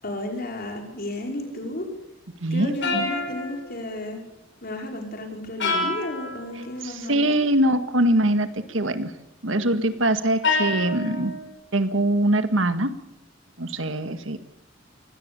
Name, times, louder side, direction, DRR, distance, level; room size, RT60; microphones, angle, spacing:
voice 1, 0.0-1.9 2.5-4.2 4.6-7.3, left 1 dB, 50° left, 2 dB, 5.3 m, -33 dB
sound 1, 2.8-4.0 5.6-6.5 10.4-11.4, left 3 dB, 65° left, 6.0 m, -27 dB
voice 2, 6.8-9.1 9.4-11.3 11.7-12.9 13.6-14.4, right 1 dB, 75° right, 10 dB, 1.8 m, -23 dB
23.5 x 18.0 x 7.0 m, 0.90 s
head